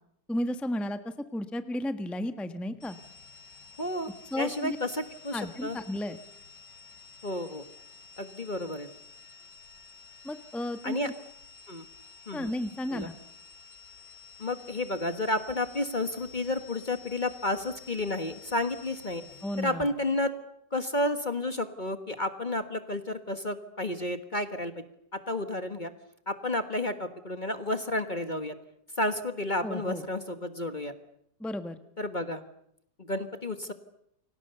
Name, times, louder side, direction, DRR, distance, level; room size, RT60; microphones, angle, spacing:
voice 1, 0.3-3.0 4.3-4.8 5.3-6.2 10.2-11.1 12.3-13.1 19.4-19.9 29.6-30.0 31.4-31.8, left 1 dB, ahead, 9 dB, 1.2 m, -33 dB
sound 1, 2.8-19.6, left 5 dB, 75° left, 6.7 m, -51 dB
voice 2, 3.8-4.1 4.4-5.8 7.2-7.6 8.2-8.9 10.8-11.1 11.7-11.8 12.3-12.5 12.9-13.1 14.4-19.2 19.6-20.3 20.7-24.7 25.1-25.9 26.3-28.5 29.0-30.9 32.0-32.4 33.0-33.7, left 1 dB, 30° left, 9 dB, 1.5 m, -31 dB
29.5 x 24.0 x 6.9 m, 0.76 s
omnidirectional pair, 1.9 m